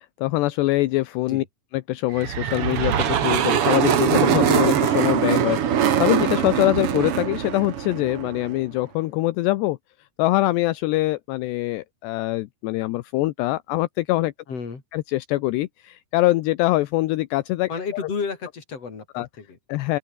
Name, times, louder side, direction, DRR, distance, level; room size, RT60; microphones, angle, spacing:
voice 1, 0.2-1.4 1.9-9.8 10.2-14.3 14.9-17.7 19.2-19.3 19.7-20.0, left 18 dB, 80° left, 3.0 m, -23 dB
sound 1, 2.1-8.6, right 9 dB, 65° right, 1.4 m, -22 dB
voice 2, 14.5-14.8 17.7-19.6, left 5 dB, 35° left, 5.3 m, -32 dB
open air
omnidirectional pair, 5.0 m